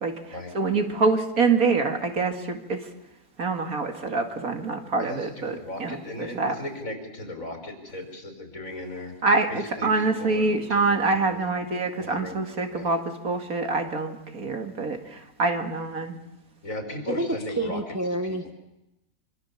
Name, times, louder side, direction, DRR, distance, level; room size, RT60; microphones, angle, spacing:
voice 1, 0.5-2.8 3.4-6.6 9.2-16.2, right 3 dB, 60° right, 5 dB, 2.5 m, -25 dB
voice 2, 5.0-9.1 9.5-11.4 12.0-12.4 12.7-12.9 16.6-17.8 18.2-18.5, left 1 dB, 55° left, 5 dB, 5.0 m, -37 dB
voice 3, 17.6-18.5, right 1 dB, 10° right, 6 dB, 1.0 m, -28 dB
26.0 x 25.0 x 7.2 m, 0.91 s
omnidirectional pair, 1.7 m